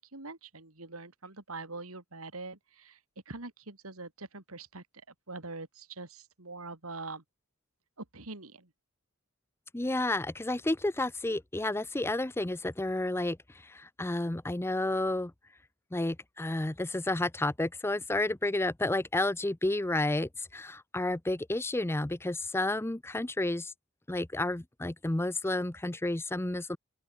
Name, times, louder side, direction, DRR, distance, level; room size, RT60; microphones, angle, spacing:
voice 1, 0.0-3.0 3.2-7.2 8.0-8.7, right 3 dB, 75° right, 3.4 m, -44 dB
voice 2, 9.7-13.4 13.6-15.3 15.9-23.7 24.1-26.8, left 2 dB, 10° left, 0.6 m, -31 dB
open air
head